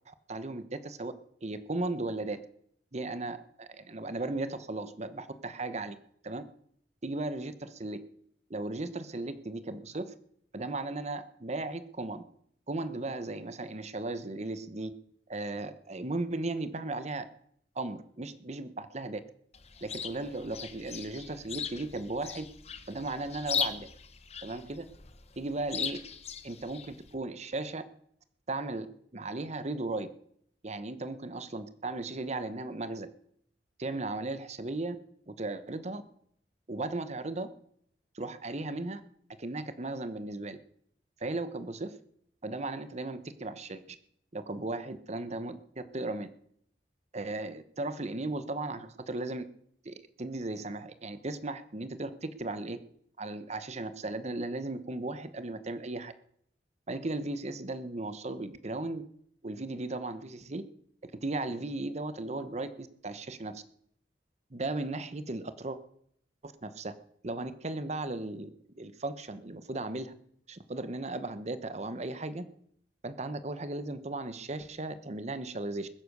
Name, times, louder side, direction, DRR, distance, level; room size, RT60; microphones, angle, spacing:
voice 1, 0.1-1.1 1.4-2.4 2.9-6.0 6.2-6.4 7.0-8.0 8.5-10.1 10.5-12.2 12.7-14.9 15.3-17.3 17.8-19.2 19.8-22.5 22.9-23.9 24.4-24.8 25.4-26.0 26.4-27.8 28.5-28.9 29.1-30.1 30.6-33.1 33.8-35.0 35.3-36.0 36.7-37.5 38.1-39.0 39.4-40.6 41.2-42.0 42.4-43.8 44.3-46.3 47.1-49.4 49.8-52.8 53.2-56.1 56.9-59.0 59.4-60.6 61.0-63.6 64.5-65.8 66.4-66.9 67.2-70.1 70.5-72.5 73.0-75.9, right 2 dB, 40° right, 12 dB, 1.0 m, -36 dB
Chirp tweet, 19.5-27.1, left 7 dB, 40° left, 1.2 m, -39 dB
21.0 x 9.7 x 6.7 m, 0.69 s
head